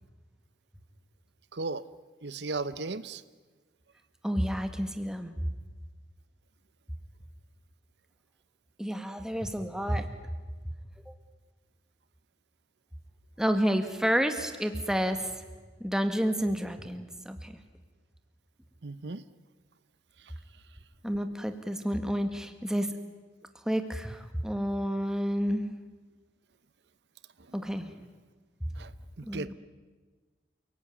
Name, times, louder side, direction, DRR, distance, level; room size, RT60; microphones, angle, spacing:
voice 1, 1.5-1.8 2.2-3.2 18.8-19.2 28.8-28.9 29.2-29.5, right 3 dB, 75° right, 14 dB, 0.8 m, -35 dB
voice 2, 4.2-5.5 8.8-10.1 11.1-11.2 13.4-15.4 15.8-17.6 21.0-22.9 23.7-25.6 27.5-27.9 29.2-29.5, equal, 5° right, 7 dB, 1.8 m, -30 dB
28.5 x 18.0 x 9.6 m, 1.4 s
head